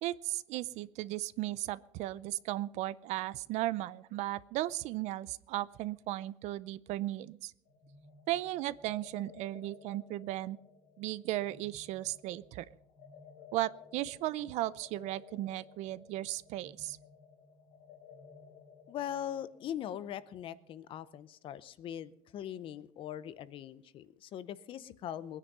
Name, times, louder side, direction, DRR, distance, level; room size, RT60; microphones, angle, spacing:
voice 1, 0.0-7.5 8.3-10.6 11.0-12.7 13.5-17.0, right 15 dB, 60° right, 19 dB, 0.6 m, -36 dB
sound 1, 7.7-21.2, left 6 dB, 80° left, 3.3 m, -57 dB
voice 2, 18.9-25.4, left 10 dB, 40° left, 16 dB, 0.7 m, -41 dB
20.5 x 9.9 x 5.4 m, 0.73 s
cardioid pair, 170°, 13 cm